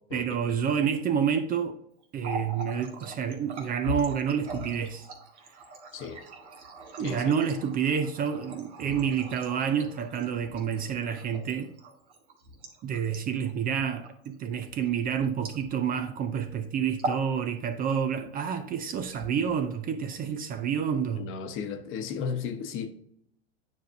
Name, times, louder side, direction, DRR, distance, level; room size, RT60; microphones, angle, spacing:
voice 1, 0.1-1.8 2.1-5.1 7.0-11.7 12.8-21.3, right 7 dB, 25° right, 0.5 m, -29 dB
Water tap faucet, 2.0-16.1 16.3-16.6 16.9-17.3 17.6-18.3 18.9-19.7, right 1 dB, 90° right, 1.8 m, -40 dB
voice 2, 7.0-7.4 21.1-22.9, left 6 dB, 40° left, 0.9 m, -34 dB
9.2 x 5.1 x 2.6 m
hypercardioid pair, 115°, 33 cm